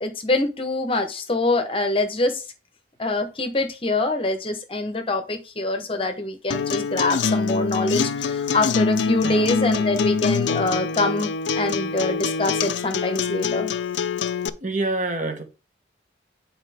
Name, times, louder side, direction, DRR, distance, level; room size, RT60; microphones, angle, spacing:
voice 1, 0.0-2.4 3.0-13.7, left 2 dB, 30° left, 0.8 m, -25 dB
Acoustic guitar, 6.5-14.5, left 5 dB, 75° left, 0.4 m, -25 dB
voice 2, 9.2-9.5 14.6-15.4, right 2 dB, 40° right, 1.1 m, -27 dB
8.9 x 4.3 x 3.4 m
head